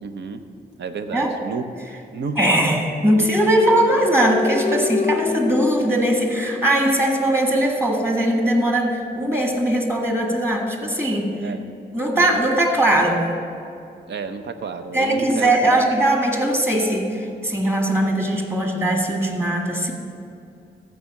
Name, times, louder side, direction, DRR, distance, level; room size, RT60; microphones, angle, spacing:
voice 1, 0.0-0.4 0.8-1.6 2.1-2.5 3.1-3.3 3.7-3.8 11.4-11.7 12.1-12.4 14.1-15.8, right 5 dB, 75° right, 9 dB, 0.7 m, -31 dB
voice 2, 2.4-11.3 11.9-13.2 14.9-19.9, right 1 dB, 15° right, 2 dB, 1.9 m, -20 dB
sound 1, 3.3-7.1, left 5 dB, 40° left, 0.5 m, -27 dB
14.5 x 4.9 x 6.5 m, 2.5 s
cardioid pair, 70°, 18 cm